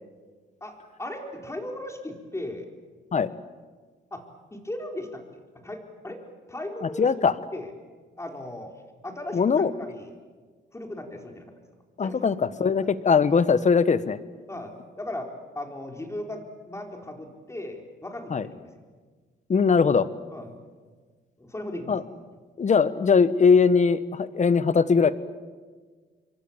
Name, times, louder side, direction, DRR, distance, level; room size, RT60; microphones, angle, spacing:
voice 1, 0.6-2.7 4.1-4.2 4.5-6.2 6.5-7.1 7.5-7.7 8.2-8.8 9.0-10.1 10.7-11.5 12.0-12.2 12.8-12.9 14.5-15.3 15.5-16.4 16.7-18.7 20.3-20.5 21.4-22.0, left 1 dB, 15° left, 3 dB, 4.2 m, -37 dB
voice 2, 7.0-7.3 9.3-9.7 12.0-14.2 18.3-18.5 19.5-20.1 21.9-22.0 22.6-25.1, left 5 dB, 35° left, 14 dB, 1.2 m, -20 dB
27.5 x 23.5 x 7.3 m, 1.5 s
cardioid pair, 90°, 20 cm